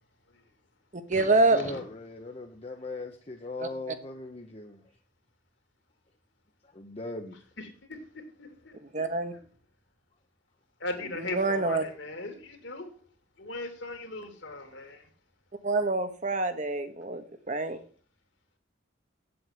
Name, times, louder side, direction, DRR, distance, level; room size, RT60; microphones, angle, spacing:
voice 1, 0.9-1.6 3.6-3.7 8.9-9.3 11.2-11.8 15.6-17.8, right 2 dB, 35° right, 1.2 m, -26 dB
voice 2, 1.5-4.8 6.7-7.4, left 2 dB, 30° left, 0.9 m, -39 dB
voice 3, 7.6-9.4 10.8-12.9 13.4-15.1, left 2 dB, 65° left, 2.7 m, -39 dB
8.5 x 7.8 x 7.7 m
head